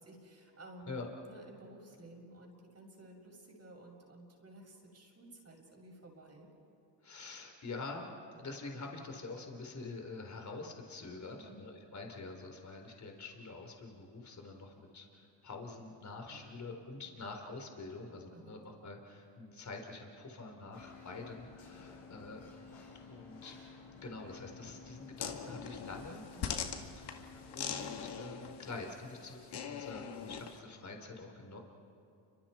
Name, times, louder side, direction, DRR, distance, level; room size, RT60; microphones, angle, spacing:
voice 1, 0.0-6.5 11.2-11.6 16.2-16.7 17.0-17.1 18.3-18.6 26.3-26.6, right 1 dB, 30° right, 0 dB, 6.6 m, -54 dB
voice 2, 7.0-8.1 8.4-22.5 23.1-23.6 24.0-26.2 27.0-29.4 29.7-31.6, left 3 dB, 35° left, 3 dB, 4.1 m, -46 dB
sound 1, 20.7-28.3, left 4 dB, 70° left, 6.6 m, -53 dB
sound 2, 25.2-30.6, left 7 dB, 55° left, 2.1 m, -42 dB
30.0 x 25.5 x 4.5 m, 2.7 s
supercardioid pair, 75°, 47 cm